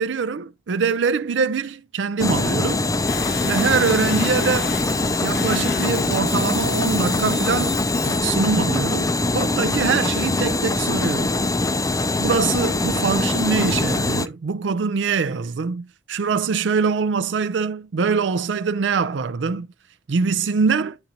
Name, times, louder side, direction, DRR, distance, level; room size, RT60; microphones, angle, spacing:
voice 1, 0.0-2.9 3.4-4.7 5.2-7.8 8.2-11.4 12.2-19.7 20.1-21.0, right 5 dB, 80° right, 0.4 m, -23 dB
sound 1, 2.2-14.3, left 2 dB, 20° left, 0.4 m, -23 dB
sound 2, 3.1-8.2, left 5 dB, 65° left, 1.0 m, -33 dB
10.5 x 3.9 x 2.9 m
head